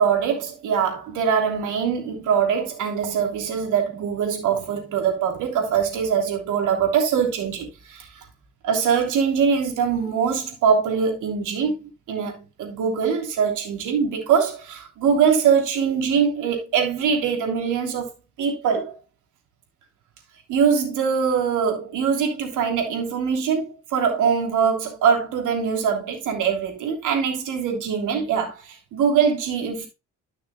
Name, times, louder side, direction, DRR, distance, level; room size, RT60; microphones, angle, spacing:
voice 1, 0.0-8.2 8.6-11.8 12.1-18.1 18.4-18.9 20.5-29.9, right 7 dB, 90° right, 3.1 m, -22 dB
13.0 x 6.1 x 2.3 m
cardioid pair, 90°, 30 cm